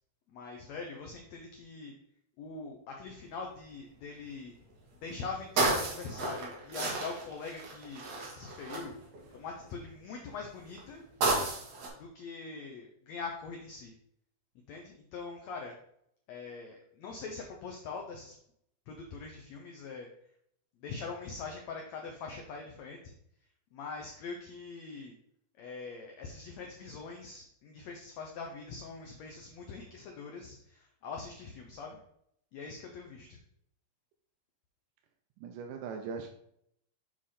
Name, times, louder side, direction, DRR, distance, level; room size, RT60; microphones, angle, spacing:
voice 1, 0.3-1.9 2.4-4.5 4.9-8.0 8.3-8.9 9.3-11.0 12.0-13.9 14.7-15.7 16.3-18.3 18.9-20.1 20.8-23.1 23.7-25.2 25.5-32.0 32.5-33.4, left 4 dB, 85° left, 2 dB, 1.5 m, -43 dB
sound 1, 3.3-3.7 4.3-4.4 4.5-9.7 10.4-11.9, right 2 dB, 55° right, 2.5 m, -33 dB
voice 2, 35.4-36.3, right 5 dB, 80° right, 4 dB, 2.0 m, -39 dB
7.5 x 5.0 x 4.2 m, 0.72 s
omnidirectional pair, 4.2 m